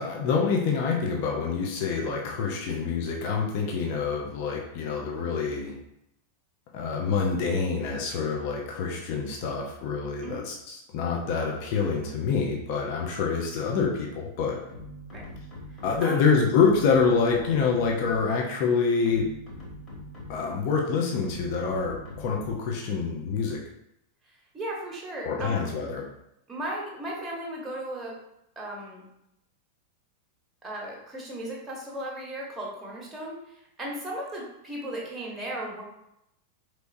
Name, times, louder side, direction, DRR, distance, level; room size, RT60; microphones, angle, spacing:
voice 1, 0.0-5.7 6.7-14.6 15.8-19.2 20.3-23.6 25.2-26.0, left 5 dB, 45° left, 0 dB, 0.7 m, -26 dB
sound 1, 14.7-16.2 16.6-18.4 18.9-20.6 21.2-22.8, equal, 20° left, 1.5 m, -43 dB
voice 2, 24.5-25.6 26.5-28.2 28.6-29.0 30.6-35.8, right 1 dB, 10° right, -3 dB, 1.2 m, -36 dB
4.5 x 3.2 x 2.6 m, 0.81 s
figure-of-eight pair, 90°, 0 cm